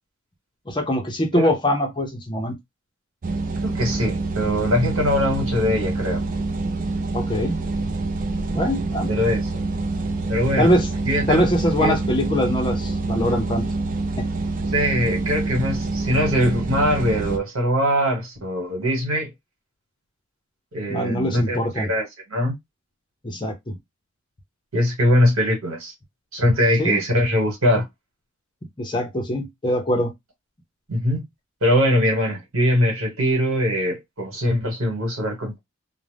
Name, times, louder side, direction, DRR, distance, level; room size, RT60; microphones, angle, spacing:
voice 1, 0.7-2.5 7.1-7.5 8.5-9.1 10.6-10.9 11.3-13.7 14.2-14.3 20.9-21.9 23.2-23.7 26.8-27.0 28.8-30.1, equal, 20° left, 0.5 m, -23 dB
sound 1, 3.2-17.4, right 3 dB, 35° right, 0.4 m, -26 dB
voice 2, 3.6-6.2 9.1-9.6 10.3-10.7 11.0-11.5 11.8-12.0 14.7-19.3 20.7-22.5 24.7-25.9 26.3-27.9 30.9-31.2 31.6-35.6, equal, 70° right, 1.3 m, -22 dB
2.4 x 2.0 x 3.2 m
head